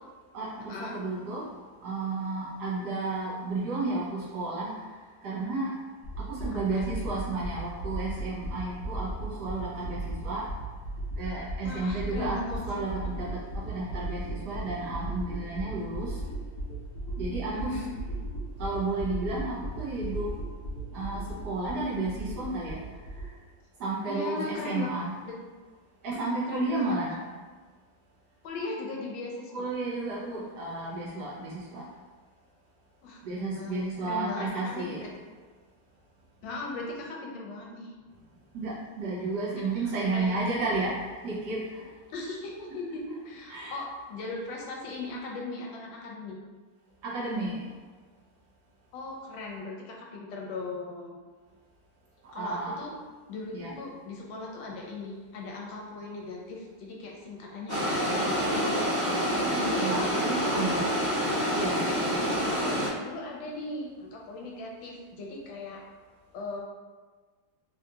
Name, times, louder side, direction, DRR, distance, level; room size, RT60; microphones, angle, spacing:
voice 1, 0.3-1.5 1.8-4.9 5.2-5.8 6.2-10.5 11.2-16.3 17.2-17.8 18.6-20.3 20.9-23.3 23.8-25.1 26.0-27.2 29.5-31.9 33.2-35.0 38.5-41.9 43.5-43.8 47.0-47.7 52.2-52.8 53.5-53.7 59.2-60.8 61.5-61.9, right 2 dB, 70° right, -5 dB, 1.1 m, -32 dB
sound 1, 6.0-23.3, right 1 dB, 45° left, 1.1 m, -37 dB
voice 2, 6.4-7.0 11.6-12.8 17.5-17.9 24.0-24.9 25.3-25.4 26.1-26.9 28.4-29.7 33.0-34.5 34.7-34.9 36.4-37.9 39.8-40.4 42.1-46.4 48.9-51.3 52.3-52.9 53.3-58.8 59.5-60.9 62.4-65.8 66.3-66.6, left 3 dB, 80° left, -1 dB, 1.3 m, -38 dB
sound 2, 57.7-62.9, equal, 15° right, 0.4 m, -27 dB
3.7 x 2.7 x 2.3 m, 1.4 s
omnidirectional pair, 2.1 m